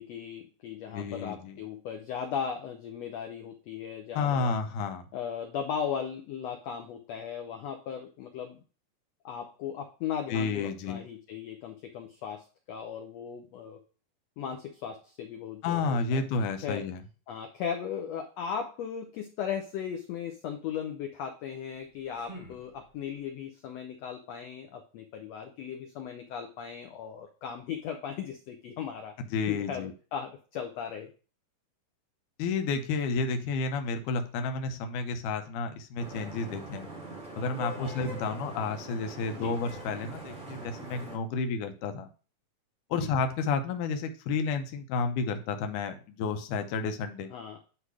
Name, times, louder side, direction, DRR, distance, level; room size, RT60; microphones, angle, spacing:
voice 1, 0.0-4.5 5.1-8.6 9.2-13.8 14.4-16.2 16.6-16.8 17.3-29.2 29.5-31.1 37.8-37.9 39.4-39.5 42.9-43.1 47.3-47.6, left 7 dB, 90° left, 4 dB, 1.4 m, -37 dB
voice 2, 0.9-1.6 4.1-5.1 10.3-11.0 15.6-17.0 29.2-29.9 32.4-36.9 37.3-42.1 42.9-47.3, left 4 dB, 70° left, 7 dB, 2.2 m, -31 dB
sound 1, 21.6-23.3, equal, 60° right, 0.3 m, -50 dB
Vehicle horn car horn honking / Traffic noise roadway noise, 36.0-41.2, right 2 dB, 25° right, 1.8 m, -42 dB
10.0 x 3.4 x 4.8 m, 0.37 s
omnidirectional pair, 4.0 m